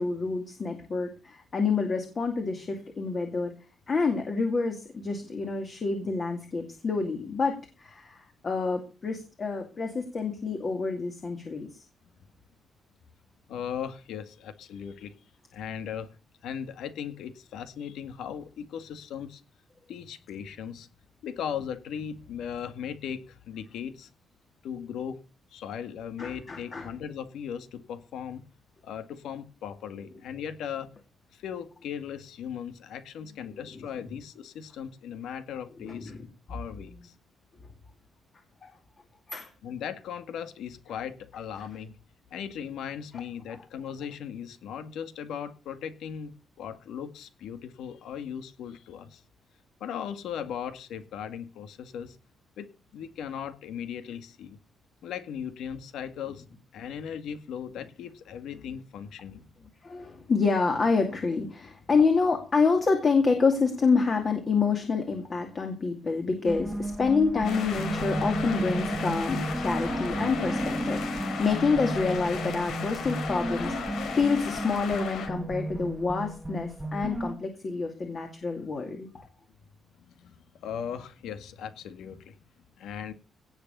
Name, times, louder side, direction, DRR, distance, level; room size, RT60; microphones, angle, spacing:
voice 1, 0.0-3.5 3.9-11.8 26.2-26.9 33.4-33.8 35.8-36.3 38.6-38.7 39.3-39.5 43.5-43.6 59.8-79.3, left 4 dB, 30° left, 4 dB, 2.4 m, -28 dB
voice 2, 13.5-15.1 15.5-16.1 16.4-19.4 19.9-20.9 21.2-24.1 24.6-25.2 25.5-28.4 28.8-30.9 31.3-36.1 36.5-37.1 39.6-41.9 42.3-46.3 46.6-49.2 49.8-52.2 52.6-54.6 55.0-56.4 56.7-59.4 80.0-82.4 82.8-83.1, left 8 dB, 80° left, 10 dB, 2.0 m, -38 dB
sound 1, 66.5-77.3, right 1 dB, 5° right, 1.1 m, -33 dB
sound 2, 67.4-75.3, left 6 dB, 65° left, 4.9 m, -36 dB
18.0 x 6.8 x 6.9 m, 0.34 s
cardioid pair, 170°, 0 cm